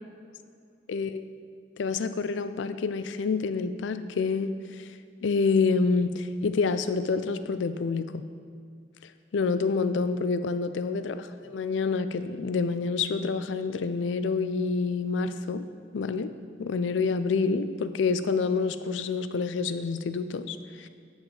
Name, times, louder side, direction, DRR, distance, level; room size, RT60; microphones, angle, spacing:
voice 1, 0.9-1.3 1.8-4.9 5.2-8.2 9.3-15.6 15.9-16.3 16.6-20.9, left 4 dB, 75° left, 12 dB, 0.4 m, -27 dB
8.8 x 7.1 x 3.9 m, 2.3 s
head